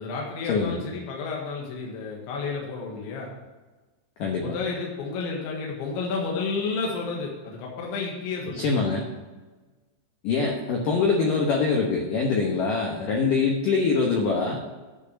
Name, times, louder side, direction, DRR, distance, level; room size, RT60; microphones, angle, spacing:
voice 1, 0.0-3.3 4.4-8.7, left 4 dB, 75° left, -2 dB, 3.7 m, -31 dB
voice 2, 8.6-9.1 10.2-14.6, left 4 dB, 90° left, 0 dB, 1.9 m, -24 dB
10.5 x 5.7 x 6.1 m, 1.2 s
omnidirectional pair, 5.6 m